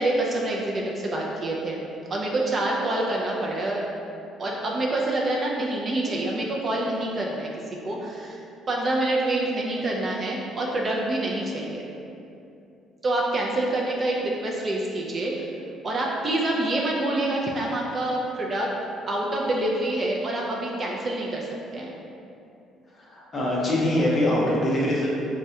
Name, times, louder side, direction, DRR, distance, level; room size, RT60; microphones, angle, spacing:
voice 1, 0.0-1.8 2.1-3.9 4.4-7.5 7.8-11.8 13.0-15.5 15.8-18.7 19.1-21.5 21.7-21.9, right 1 dB, 30° right, -2 dB, 0.3 m, -26 dB
voice 2, 22.9-25.1, left 1 dB, 30° left, -4 dB, 0.6 m, -23 dB
3.4 x 2.1 x 2.7 m, 2.7 s
cardioid pair, 130°, 0 cm